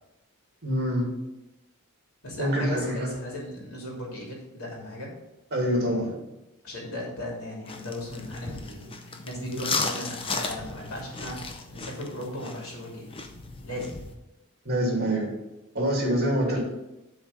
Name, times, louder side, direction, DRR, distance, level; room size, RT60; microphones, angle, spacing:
voice 1, 0.6-1.1 2.4-3.1 5.5-6.2 14.6-15.3 15.7-16.6, equal, 50° right, -1 dB, 2.6 m, -25 dB
voice 2, 2.2-5.1 6.6-13.3 13.6-13.9 16.4-16.6, left 1 dB, 85° left, -2 dB, 2.9 m, -37 dB
sound 1, 7.6-14.1, left 4 dB, 25° left, 0.7 m, -35 dB
7.9 x 4.0 x 6.7 m, 0.98 s
head